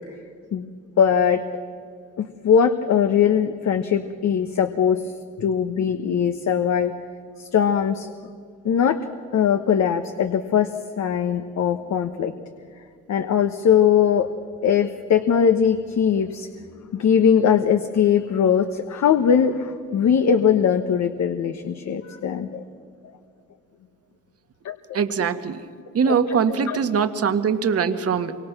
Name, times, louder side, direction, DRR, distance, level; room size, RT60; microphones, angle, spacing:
voice 1, 1.0-1.4 2.2-6.9 7.4-8.1 8.6-9.0 9.3-10.7 11.0-12.3 13.1-14.3 14.6-22.6 24.6-24.8 26.1-26.8, left 8 dB, 65° left, 7 dB, 1.3 m, -20 dB
voice 2, 24.9-25.6 25.9-28.4, right 6 dB, 50° right, 9 dB, 1.7 m, -22 dB
27.0 x 25.0 x 6.1 m, 2.3 s
cardioid pair, 90°, 30 cm